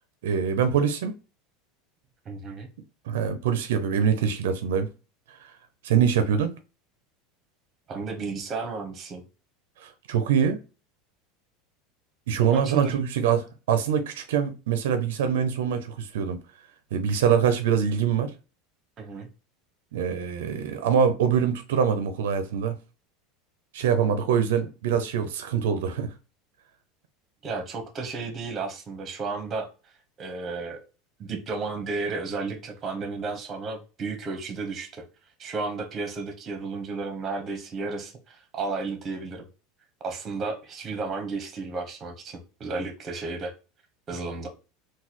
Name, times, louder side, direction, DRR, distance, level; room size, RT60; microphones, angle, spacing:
voice 1, 0.2-1.1 3.1-4.9 5.3-5.5 5.8-6.5 9.8-10.6 12.3-16.4 16.9-18.3 19.9-22.8 23.7-26.1, right 7 dB, 85° right, 0.4 m, -24 dB
voice 2, 2.2-2.7 7.9-9.2 12.5-12.9 19.0-19.3 27.4-29.7 30.2-30.8 31.2-35.0 35.4-39.4 40.0-43.5 44.1-44.5, right 3 dB, 30° right, 0.9 m, -33 dB
3.9 x 2.2 x 2.9 m
supercardioid pair, 130°, 0 cm